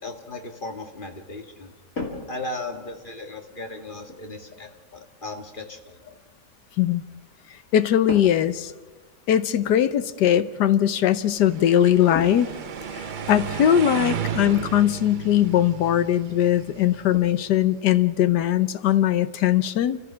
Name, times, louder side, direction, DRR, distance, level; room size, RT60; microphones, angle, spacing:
voice 1, 0.0-1.7 2.3-6.2, left 2 dB, 30° left, 4 dB, 2.0 m, -36 dB
sound 1, 2.0-3.1 4.1-4.3 8.1-8.6 8.9-9.0 9.6-9.7 12.1-13.1 14.5-14.6 15.0-15.1 15.5-15.8 16.2-16.3 16.6-17.4, left 3 dB, 55° left, 3.0 m, -36 dB
voice 2, 7.7-8.7 9.3-12.5 12.9-20.0, left 11 dB, 85° left, 13 dB, 1.4 m, -20 dB
sound 2, 11.3-17.5, right 8 dB, 60° right, 0.5 m, -34 dB
29.0 x 15.0 x 6.2 m, 1.2 s
omnidirectional pair, 1.8 m